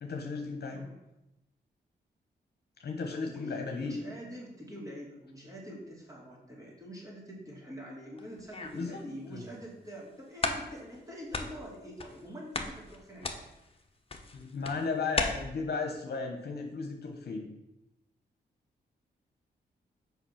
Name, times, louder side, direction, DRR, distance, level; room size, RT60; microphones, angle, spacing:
voice 1, 0.0-0.9 2.8-4.0 8.7-9.4 14.3-17.5, left 4 dB, 60° left, 3 dB, 1.0 m, -35 dB
voice 2, 0.6-1.0 3.1-13.5, equal, 20° right, -4 dB, 3.0 m, -45 dB
sound 1, 8.2-9.0 9.5-9.6 10.1-10.2 10.4-11.0 11.3-12.3 12.5-15.2, left 3 dB, 30° left, 1.1 m, -36 dB
5.8 x 5.2 x 5.8 m, 0.91 s
cardioid pair, 60°, 18 cm